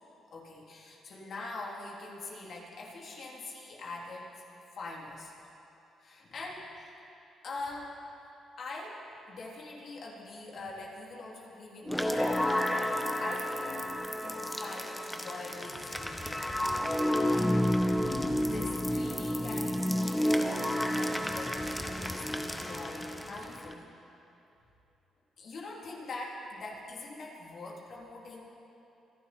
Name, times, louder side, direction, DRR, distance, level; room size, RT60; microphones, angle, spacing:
voice 1, 0.3-4.4 4.7-5.3 6.0-6.9 7.4-7.9 8.6-12.8 13.2-13.9 14.2-16.4 17.0-23.9 25.4-28.5, left 2 dB, 55° left, -3 dB, 3.5 m, -43 dB
sound 1, 11.9-23.7, left 1 dB, 10° left, 1.1 m, -31 dB
26.0 x 11.0 x 4.5 m, 3.0 s
cardioid pair, 90°, 0 cm